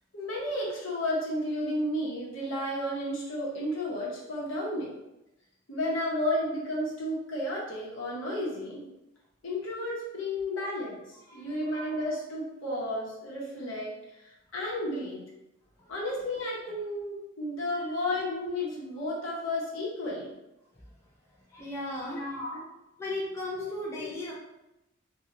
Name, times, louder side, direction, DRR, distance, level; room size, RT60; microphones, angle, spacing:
voice 1, 0.1-4.9 5.7-8.9 9.4-15.2 15.9-20.3 22.0-22.6 23.6-23.7 24.0-24.1, left 1 dB, 65° left, -5 dB, 0.9 m, -32 dB
voice 2, 11.3-11.6 15.8-15.9 17.7-17.9 20.7-21.0 21.5-22.4 23.0-24.3, left 1 dB, 15° left, -5 dB, 0.3 m, -37 dB
2.7 x 2.3 x 2.9 m, 0.94 s
head